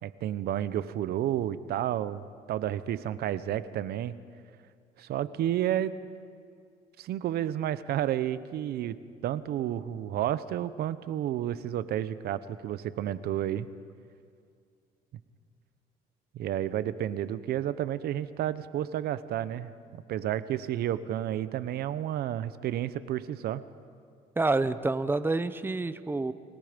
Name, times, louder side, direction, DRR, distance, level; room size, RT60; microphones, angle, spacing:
voice 1, 0.0-4.1 5.0-5.9 7.0-9.0 9.2-13.7 16.3-23.6, right 11 dB, 70° right, 14 dB, 0.9 m, -31 dB
voice 2, 24.4-26.3, right 3 dB, 15° right, 13 dB, 0.9 m, -28 dB
29.5 x 20.5 x 5.2 m, 2.3 s
cardioid pair, 110°, 17 cm